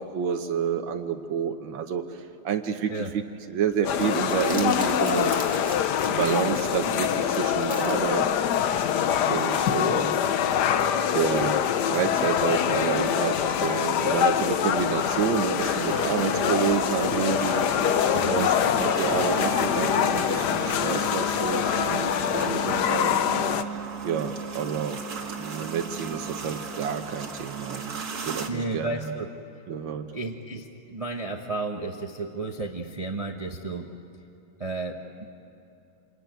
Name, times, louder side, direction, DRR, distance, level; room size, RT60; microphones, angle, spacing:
voice 1, 0.0-2.0 2.4-3.2 3.5-5.3 6.1-8.3 9.3-10.1 11.1-11.6 11.9-17.7 18.3-18.5 18.8-23.1 24.0-25.0 25.4-28.0 28.3-28.9 29.7-30.1, right 7 dB, 85° right, 6 dB, 1.8 m, -29 dB
Crumpling crinkling, 3.7-8.8, equal, 5° left, 2.5 m, -43 dB
sound 1, 3.8-23.6, left 9 dB, 65° left, 1.3 m, -24 dB
sound 2, 15.6-28.5, right 4 dB, 55° right, 2.2 m, -35 dB
voice 2, 18.1-18.5 28.5-29.3 30.1-33.9 34.6-35.2, right 3 dB, 25° right, 3 dB, 0.9 m, -32 dB
27.0 x 21.0 x 9.2 m, 2.8 s
omnidirectional pair, 2.1 m